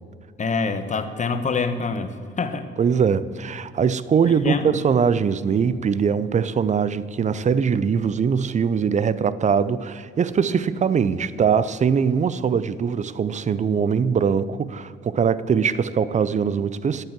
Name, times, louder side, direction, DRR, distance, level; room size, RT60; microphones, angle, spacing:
voice 1, 0.4-2.7 4.3-4.8, left 4 dB, 40° left, 1.1 m, -26 dB
voice 2, 2.8-17.0, right 6 dB, 35° right, 0.5 m, -22 dB
11.0 x 9.1 x 7.5 m
cardioid pair, 90°, 20 cm